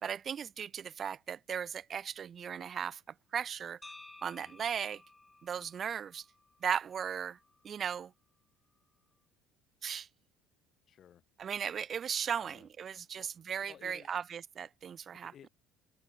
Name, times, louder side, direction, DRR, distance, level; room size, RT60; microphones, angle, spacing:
voice 1, 0.0-3.0 3.3-3.8 4.2-5.0 5.4-6.2 6.6-7.4 7.6-8.1 9.8-10.1 11.4-15.3, right 8 dB, 40° right, 0.7 m, -37 dB
sound 1, 3.8-7.9, left 2 dB, 15° left, 1.2 m, -56 dB
voice 2, 10.9-11.2 12.4-12.7 13.0-13.3 13.7-14.2 15.2-15.5, left 9 dB, 45° left, 3.8 m, -57 dB
open air
supercardioid pair, 100°, 0 cm